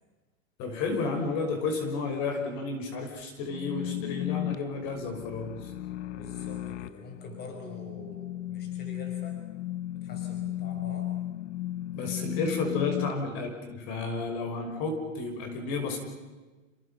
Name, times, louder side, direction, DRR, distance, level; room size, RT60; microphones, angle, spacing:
voice 1, 0.6-5.7 11.9-16.0, left 3 dB, 45° left, 5 dB, 5.7 m, -32 dB
sound 1, 3.5-13.1, left 13 dB, 60° left, 0.9 m, -35 dB
voice 2, 6.1-9.4 10.0-11.1, left 3 dB, 25° left, 3 dB, 5.3 m, -45 dB
29.5 x 27.5 x 5.7 m, 1.2 s
hypercardioid pair, 135°, 39 cm